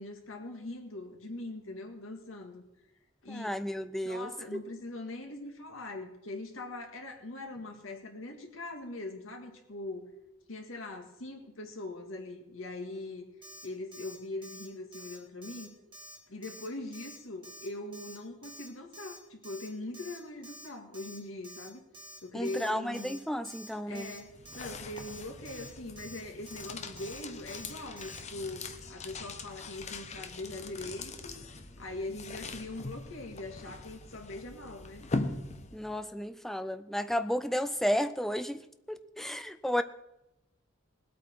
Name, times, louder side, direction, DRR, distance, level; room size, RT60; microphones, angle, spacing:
voice 1, 0.0-2.6 3.2-3.6 4.0-10.1 10.5-13.2 13.6-15.7 16.3-21.8 22.2-23.2 23.9-31.4 31.8-35.0, left 2 dB, 90° left, 4 dB, 2.0 m, -41 dB
voice 2, 3.3-4.6 22.3-24.1 35.7-39.8, equal, ahead, 11 dB, 0.4 m, -33 dB
Alarm, 13.4-13.7 13.9-14.2 14.4-14.7 14.9-15.2 15.4-15.7 15.9-16.2 16.4-16.7 16.9-17.2 17.4-17.7 17.9-18.2 18.4-18.7 18.9-19.2 19.4-19.7 19.9-20.2 20.4-20.7 20.9-21.2 21.4-21.7 21.9-22.2 22.4-22.7 22.9-23.2 23.4-23.7 23.9-24.2 24.5-24.7 25.0-25.2 25.5-25.7 26.0-26.2 26.5-26.7 27.0-27.2 27.5-27.7 28.0-28.2, right 1 dB, 25° right, 1.8 m, -49 dB
sound 1, 23.9-36.0, left 3 dB, 35° left, 0.9 m, -41 dB
19.5 x 8.4 x 4.6 m, 0.90 s
head